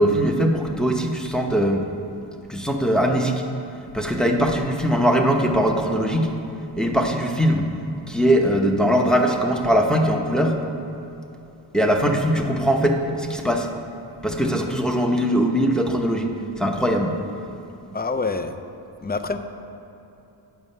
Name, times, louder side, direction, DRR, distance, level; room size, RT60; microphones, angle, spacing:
voice 1, 0.0-1.8 2.5-3.4 3.9-6.3 6.8-7.7 8.1-10.6 11.7-13.7 14.2-16.3 16.6-17.2, equal, ahead, 2 dB, 0.8 m, -21 dB
voice 2, 17.9-18.5 19.0-19.4, left 4 dB, 20° left, 8 dB, 0.5 m, -26 dB
9.1 x 6.3 x 5.5 m, 2.9 s
wide cardioid pair, 80°, 48 cm